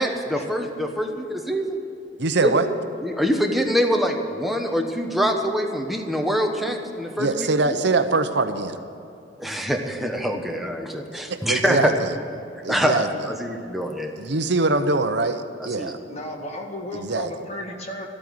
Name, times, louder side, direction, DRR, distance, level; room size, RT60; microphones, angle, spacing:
voice 1, 0.0-1.8 2.4-2.6 3.0-7.5 9.4-11.9 12.7-13.1 13.4-14.1 15.8-15.9, equal, ahead, 2 dB, 1.1 m, -24 dB
voice 2, 2.2-2.7 7.2-8.8 11.3-12.2 12.6-13.3 14.2-16.0 16.9-17.5, right 3 dB, 65° right, 8 dB, 0.8 m, -23 dB
voice 3, 16.1-18.1, left 1 dB, 35° left, 2 dB, 1.8 m, -34 dB
14.0 x 8.8 x 9.7 m, 2.6 s
head